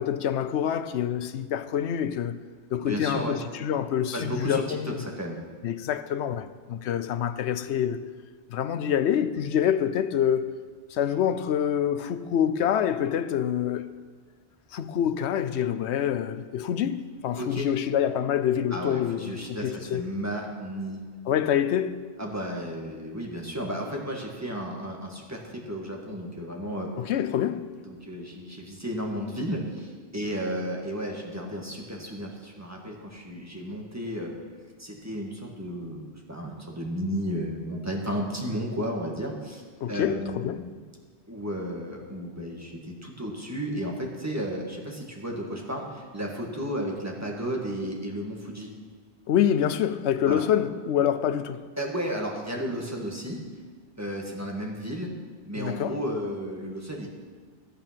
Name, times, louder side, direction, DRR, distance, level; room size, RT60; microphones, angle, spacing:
voice 1, 0.0-2.4 2.7-5.0 5.6-8.0 8.5-10.6 10.9-13.9 14.7-20.1 21.3-21.9 27.0-27.8 39.8-40.6 49.3-51.6 55.6-56.0, left 9 dB, 90° left, 0.9 m, -26 dB
voice 2, 2.8-3.4 4.1-5.4 17.4-17.7 18.7-21.0 22.2-26.9 27.8-34.3 34.8-39.6 39.9-40.7 41.3-48.7 50.3-50.4 51.8-53.4 54.0-55.1 55.4-57.1, equal, 15° right, 1.6 m, -33 dB
12.0 x 8.7 x 5.8 m
omnidirectional pair, 1.1 m